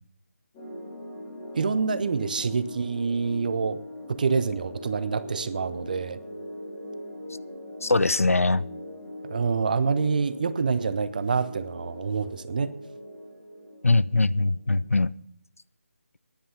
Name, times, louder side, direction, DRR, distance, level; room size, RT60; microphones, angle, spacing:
sound 1, 0.5-14.9, left 1 dB, 15° left, 2.8 m, -41 dB
voice 1, 1.5-3.8 4.1-6.2 9.2-12.7, right 5 dB, 35° right, 15 dB, 0.6 m, -26 dB
voice 2, 7.8-8.7 13.8-15.1, left 3 dB, 80° left, 19 dB, 0.5 m, -22 dB
12.5 x 10.5 x 5.7 m, 0.66 s
figure-of-eight pair, 155°, 8 cm